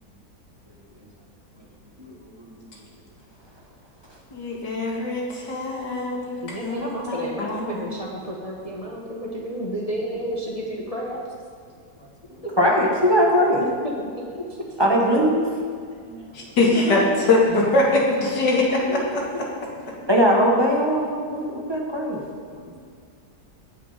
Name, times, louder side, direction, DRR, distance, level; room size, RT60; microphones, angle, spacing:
voice 1, 4.3-7.8 16.3-17.0 17.3-19.2, left 2 dB, 90° left, -2 dB, 2.6 m, -22 dB
voice 2, 6.4-11.2 12.4-12.5 13.8-14.1 14.5-14.6 16.6-17.1 19.0-19.1, equal, 25° left, -3 dB, 1.2 m, -31 dB
voice 3, 12.6-13.6 14.8-15.4 16.1-16.2 20.1-22.2 22.5-22.6, equal, 15° right, -2 dB, 1.6 m, -20 dB
17.0 x 6.6 x 5.2 m, 2.1 s
omnidirectional pair, 1.8 m